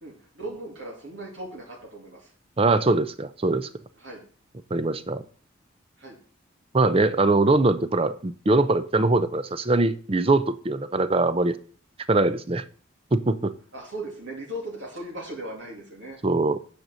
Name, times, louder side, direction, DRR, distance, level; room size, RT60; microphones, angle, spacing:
voice 1, 0.0-2.3 4.0-4.2 6.0-6.2 13.7-16.2, right 1 dB, 60° right, -2 dB, 2.5 m, -38 dB
voice 2, 2.6-3.7 4.7-5.2 6.7-11.6 12.1-12.6 13.1-13.5 16.2-16.6, right 2 dB, 25° right, 13 dB, 0.5 m, -22 dB
9.0 x 5.2 x 6.3 m, 0.43 s
head